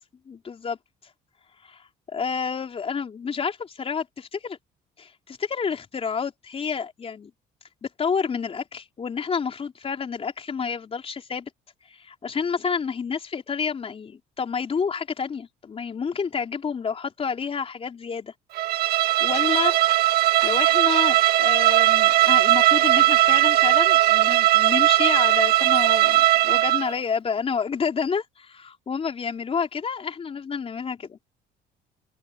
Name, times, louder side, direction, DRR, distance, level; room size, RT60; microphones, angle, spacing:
voice 1, 0.3-0.8 1.6-1.8 2.1-4.6 5.0-7.3 7.8-11.5 11.9-18.3 19.2-19.8 20.4-31.2, left 6 dB, 35° left, 3.9 m, -29 dB
Bowed string instrument, 18.5-26.9, right 15 dB, 70° right, 1.0 m, -19 dB
open air
cardioid pair, 110°, 17 cm